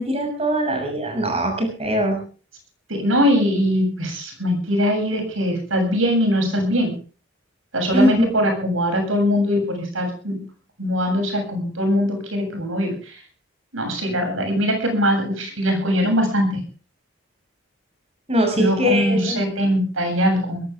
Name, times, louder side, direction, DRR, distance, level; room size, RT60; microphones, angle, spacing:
voice 1, 0.0-2.2 7.9-8.1 18.3-19.4, equal, 30° right, 4 dB, 6.8 m, -21 dB
voice 2, 2.9-6.9 7.7-10.4 10.8-13.2 13.7-16.6 18.6-20.6, equal, 90° right, 4 dB, 7.7 m, -21 dB
21.0 x 16.5 x 3.6 m, 0.39 s
head